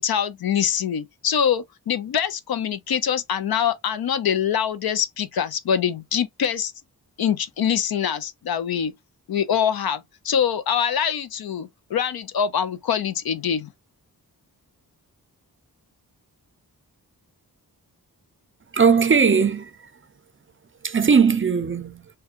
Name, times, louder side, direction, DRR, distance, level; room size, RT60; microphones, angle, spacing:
voice 1, 0.0-6.7 7.2-8.9 9.3-13.7, left 8 dB, 70° left, 0.5 m, -24 dB
voice 2, 18.7-19.8 20.8-22.1, right 6 dB, 35° right, 0.4 m, -19 dB
3.3 x 2.3 x 2.7 m
cardioid pair, 70°, 38 cm